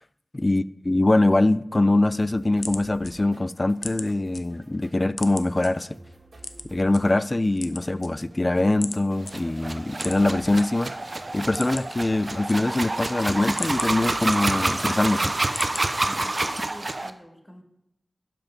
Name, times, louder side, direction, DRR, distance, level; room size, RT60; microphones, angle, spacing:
voice 1, 0.3-5.9 6.7-11.0 11.3-15.3, left 2 dB, 30° left, 0.4 m, -23 dB
sound 1, 2.2-17.0, right 2 dB, 70° right, 1.8 m, -51 dB
sound 2, 2.5-4.4 4.8-5.7 6.4-7.0 7.5-8.4 8.8-9.0 9.3-9.4 9.9-10.6 11.0-11.1 11.4-12.0 12.3-13.0 13.4-14.8 15.2-15.9 16.4-16.8, left 3 dB, 65° left, 0.7 m, -37 dB
sound 3, 9.2-17.1, right 2 dB, 40° right, 0.6 m, -28 dB
voice 2, 16.0-17.6, equal, 10° left, 1.7 m, -46 dB
12.0 x 6.0 x 5.3 m
wide cardioid pair, 70°, 0 cm